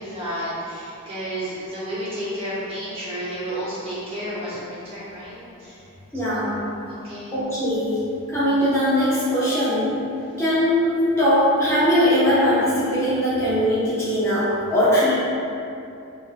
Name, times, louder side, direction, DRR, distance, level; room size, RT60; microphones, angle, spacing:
voice 1, 0.0-5.8 6.2-6.6 6.8-7.3, equal, 25° right, -10 dB, 1.0 m, -31 dB
voice 2, 6.1-6.6 7.3-8.0 8.3-10.0 10.4-15.1, equal, 15° left, -11 dB, 0.6 m, -20 dB
5.1 x 2.5 x 2.4 m, 2.7 s
head